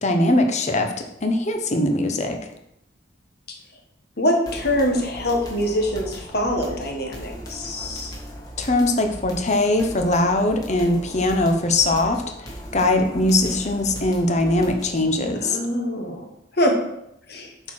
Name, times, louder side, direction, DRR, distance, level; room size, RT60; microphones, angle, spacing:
voice 1, 0.0-2.4 8.6-15.6, left 2 dB, 35° left, 5 dB, 1.0 m, -21 dB
voice 2, 4.2-8.1 15.4-16.3 16.6-16.7 17.3-17.5, equal, 55° left, 1 dB, 1.6 m, -24 dB
sound 1, 4.5-15.1, equal, 20° left, 1.6 m, -38 dB
8.0 x 4.6 x 6.3 m, 0.80 s
head